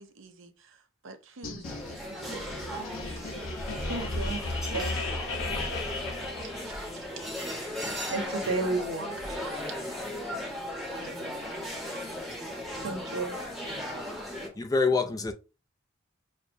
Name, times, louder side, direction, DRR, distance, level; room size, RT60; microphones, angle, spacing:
voice 1, 0.0-3.5 4.1-4.4 10.9-11.5, right 3 dB, 70° right, 0.6 m, -50 dB
sound 1, 1.4-7.1, left 2 dB, 80° left, 0.8 m, -35 dB
sound 2, 1.6-14.5, left 1 dB, ahead, 0.8 m, -37 dB
voice 2, 3.9-4.4 4.7-5.1 6.4-6.5 7.8-9.6 12.8-13.4 13.7-14.4, right 3 dB, 85° right, 1.2 m, -34 dB
voice 3, 14.4-15.3, left 4 dB, 20° left, 0.4 m, -26 dB
6.4 x 2.1 x 2.6 m
head